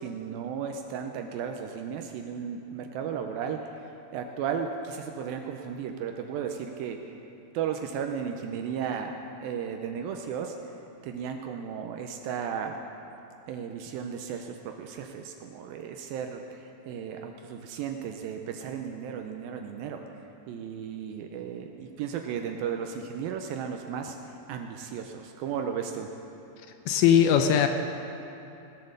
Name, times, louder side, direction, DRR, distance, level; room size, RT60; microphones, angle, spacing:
voice 1, 0.0-7.1 7.5-10.8 11.0-12.8 13.5-20.0 20.5-26.1, right 7 dB, 80° right, 4 dB, 2.2 m, -35 dB
voice 2, 26.9-27.7, left 9 dB, 80° left, 6 dB, 2.3 m, -20 dB
18.0 x 8.4 x 6.6 m, 2.9 s
omnidirectional pair, 4.6 m